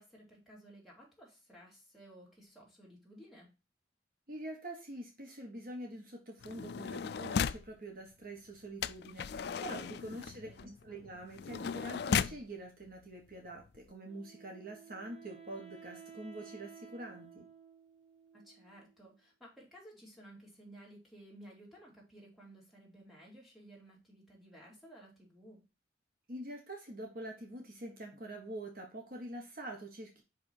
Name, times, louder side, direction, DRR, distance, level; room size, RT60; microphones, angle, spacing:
voice 1, 0.0-3.5 10.4-11.1 18.3-25.6, right 1 dB, ahead, -3 dB, 3.0 m, -56 dB
voice 2, 4.3-10.5 10.8-17.5 26.3-30.2, right 1 dB, 50° right, 2 dB, 1.5 m, -45 dB
sound 1, 6.4-7.7 8.8-12.4 13.3-13.4 13.6-13.9, left 7 dB, 60° left, 0.3 m, -36 dB
Wind instrument woodwind instrument, 14.1-19.1, right 7 dB, 35° right, 1.5 m, -55 dB
5.6 x 5.2 x 4.5 m, 0.28 s
head